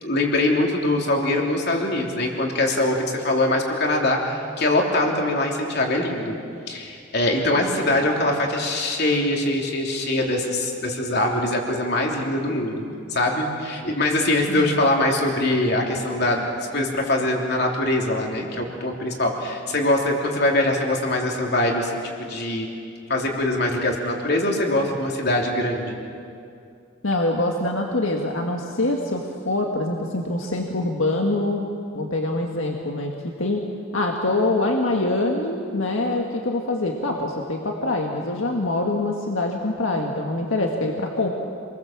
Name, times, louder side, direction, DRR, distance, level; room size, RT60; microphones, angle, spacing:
voice 1, 0.0-6.3 6.7-12.8 13.1-22.7 23.1-26.0, left 1 dB, 55° left, 0 dB, 3.3 m, -23 dB
voice 2, 27.0-31.7 31.9-33.7 33.9-41.3, left 2 dB, 75° left, 1 dB, 1.8 m, -24 dB
27.5 x 21.5 x 7.4 m, 2.4 s
head